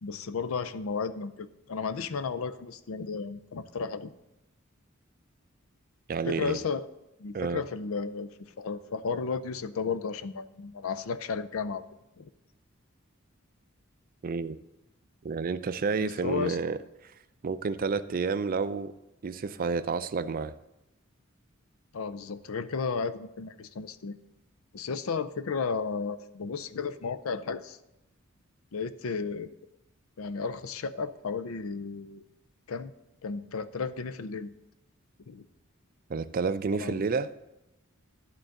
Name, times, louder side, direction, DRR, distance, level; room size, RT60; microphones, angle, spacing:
voice 1, 0.0-4.1 6.3-6.9 7.2-11.8 12.2-12.3 16.0-16.6 21.9-24.2 24.7-27.8 28.7-29.5 30.2-32.2 32.7-32.9 33.2-34.5 35.3-35.4 36.7-37.0, left 5 dB, 80° left, 14 dB, 0.5 m, -33 dB
voice 2, 6.1-6.6 7.3-7.6 14.2-14.6 15.2-16.8 17.4-18.9 19.2-20.5 36.1-37.3, right 4 dB, 45° right, 13 dB, 0.4 m, -30 dB
11.5 x 3.9 x 7.6 m, 0.93 s
head